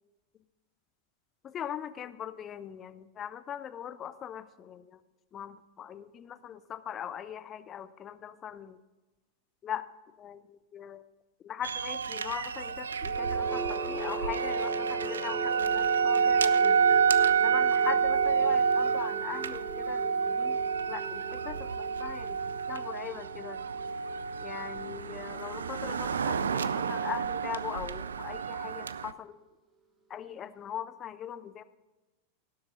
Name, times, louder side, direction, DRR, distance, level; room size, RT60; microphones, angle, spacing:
voice 1, 1.4-4.8 5.3-8.8 9.6-9.9 10.2-10.5 10.7-11.0 11.4-16.8 17.4-20.6 20.9-22.4 22.7-23.6 24.4-29.4 30.1-31.6, left 9 dB, 25° left, 13 dB, 0.6 m, -40 dB
sound 1, 11.6-29.1, right 6 dB, 70° right, 0.5 m, -29 dB
sound 2, 13.0-26.9, right 3 dB, 25° right, 1.7 m, -39 dB
18.0 x 7.8 x 3.9 m, 1.1 s
figure-of-eight pair, 90°, 0 cm